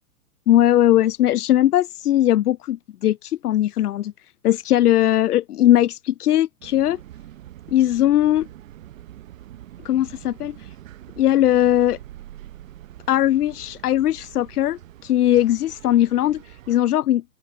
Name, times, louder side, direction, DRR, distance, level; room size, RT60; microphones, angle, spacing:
voice 1, 0.5-4.1 4.4-7.0 7.7-8.5 9.8-10.7 11.2-12.0 13.1-17.2, left 13 dB, 85° left, 0.5 m, -19 dB
sound 1, 6.6-16.8, right 13 dB, 60° right, 7.3 m, -44 dB
open air
hypercardioid pair, 120°, 44 cm